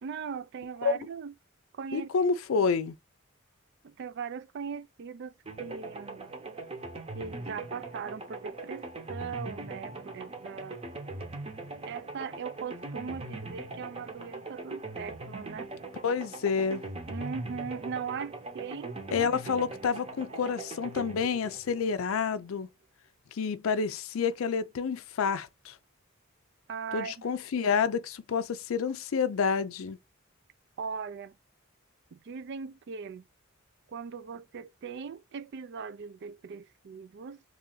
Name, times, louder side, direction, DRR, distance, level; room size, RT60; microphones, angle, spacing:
voice 1, 0.0-1.3 1.7-2.1 2.6-2.7 3.8-6.3 7.1-10.8 11.9-15.7 17.1-19.3 20.3-20.5 26.7-27.3 30.8-31.4 32.1-33.3 33.9-37.4, right 6 dB, 55° right, 0.3 m, -39 dB
voice 2, 1.9-3.0 16.0-16.8 19.1-22.7 23.3-25.8 26.9-30.0, left 5 dB, 70° left, 0.4 m, -29 dB
sound 1, 5.5-22.4, right 2 dB, 30° right, 0.8 m, -41 dB
3.1 x 2.7 x 3.8 m
head